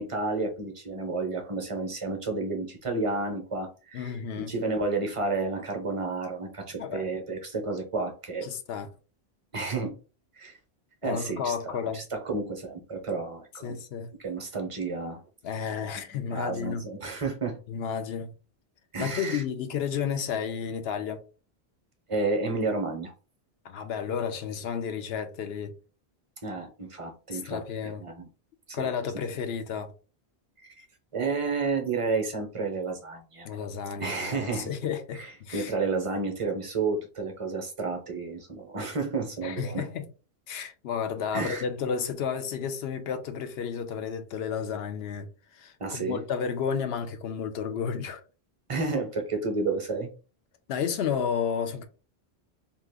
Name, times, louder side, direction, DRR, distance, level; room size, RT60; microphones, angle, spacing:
voice 1, 0.0-8.5 9.5-9.9 10.4-10.6 11.0-13.8 14.2-15.2 16.3-17.6 18.9-19.4 22.1-23.1 26.4-28.3 28.7-28.9 30.6-30.9 31.1-33.5 34.0-34.7 35.1-35.3 35.5-39.8 41.3-41.6 45.8-46.2 48.7-50.1, right 3 dB, 35° right, 0.7 m, -31 dB
voice 2, 3.9-4.5 6.8-7.0 8.4-8.9 11.0-12.0 13.6-14.1 15.4-16.9 17.7-18.3 19.0-21.2 23.6-25.7 27.3-28.0 28.7-29.9 33.4-35.7 39.4-40.1 40.5-48.2 50.7-51.8, left 7 dB, 75° left, 0.8 m, -32 dB
2.8 x 2.4 x 3.5 m
omnidirectional pair, 1.1 m